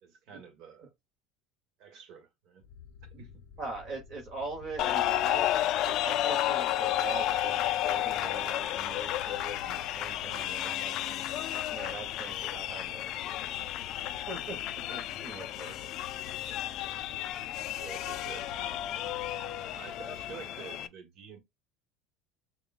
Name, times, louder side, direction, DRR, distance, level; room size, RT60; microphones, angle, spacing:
voice 1, 0.0-0.9 1.8-2.6 3.2-3.4 11.9-12.1 17.7-18.8 19.7-21.4, right 6 dB, 50° right, 1.5 m, -48 dB
sound 1, 2.6-20.4, left 6 dB, 85° left, 0.7 m, -52 dB
voice 2, 3.6-13.7 14.3-15.7, right 3 dB, 35° right, 1.2 m, -42 dB
sound 2, 4.8-20.9, left 13 dB, 45° left, 0.4 m, -32 dB
6.5 x 2.2 x 2.4 m
cardioid pair, 155°, 0 cm